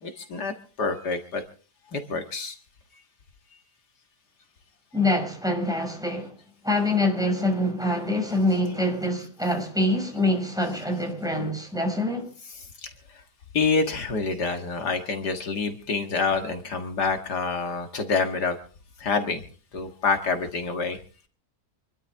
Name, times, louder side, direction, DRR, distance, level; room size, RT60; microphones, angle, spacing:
voice 1, 0.0-1.4 1.9-2.6 2.9-3.0 12.8-13.2 13.5-18.6 19.0-19.4 19.7-21.0, left 4 dB, 75° left, 2.3 m, -27 dB
voice 2, 4.9-6.3 6.6-12.3, left 1 dB, ahead, 5.6 m, -25 dB
26.5 x 12.5 x 3.5 m
omnidirectional pair, 1.8 m